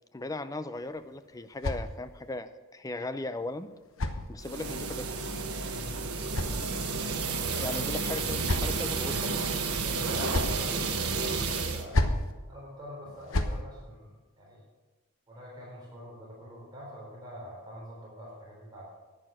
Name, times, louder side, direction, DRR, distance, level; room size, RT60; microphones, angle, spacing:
voice 1, 0.1-3.7 4.3-5.2 7.6-9.4, left 2 dB, 15° left, 11 dB, 0.5 m, -37 dB
sound 1, 0.7-2.4 3.4-4.8 5.8-7.1 8.0-9.0 9.9-10.7 11.7-12.3 13.1-13.6, left 2 dB, 65° left, 1.0 m, -33 dB
sound 2, 4.4-11.8, right 4 dB, 90° right, 1.3 m, -31 dB
sound 3, 6.8-11.9, right 4 dB, 65° right, 0.6 m, -42 dB
voice 2, 7.4-7.8 9.8-12.0 12.5-14.6 15.3-18.9, equal, 20° right, -4 dB, 3.9 m, -45 dB
11.0 x 9.9 x 6.2 m, 1.2 s
head